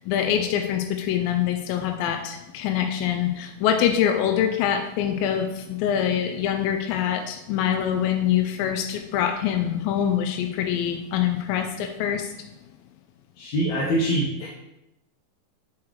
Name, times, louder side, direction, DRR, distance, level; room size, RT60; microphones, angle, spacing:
voice 1, 0.0-12.5, left 9 dB, 85° left, 5 dB, 2.3 m, -24 dB
voice 2, 13.4-14.5, right 1 dB, 65° left, -5 dB, 2.0 m, -24 dB
7.2 x 6.1 x 3.2 m, 0.91 s
omnidirectional pair, 4.0 m